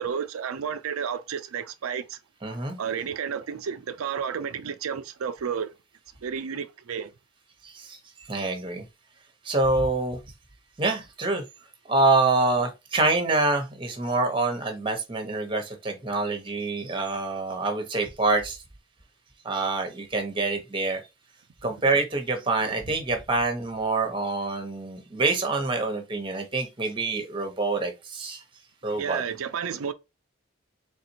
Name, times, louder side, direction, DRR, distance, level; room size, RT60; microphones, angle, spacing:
voice 1, 0.0-2.2 2.8-5.7 6.2-7.1 29.0-29.9, right 7 dB, 85° right, 0.4 m, -31 dB
voice 2, 2.4-2.8 7.6-8.8 9.4-10.2 10.8-11.4 11.9-18.6 19.4-21.0 21.6-28.4 28.8-29.2, right 3 dB, 25° right, 0.9 m, -26 dB
4.2 x 3.6 x 2.8 m
head